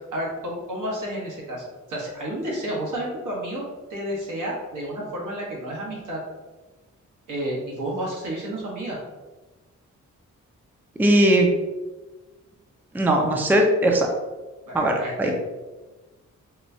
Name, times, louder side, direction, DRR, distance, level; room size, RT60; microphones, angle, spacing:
voice 1, 0.1-6.2 7.3-9.0 14.7-15.3, right 1 dB, 75° right, -3 dB, 1.2 m, -31 dB
voice 2, 11.0-11.5 12.9-14.1 14.7-15.3, right 1 dB, 5° right, 1 dB, 0.5 m, -19 dB
4.2 x 2.2 x 2.7 m, 1.2 s
cardioid pair, 70°, 31 cm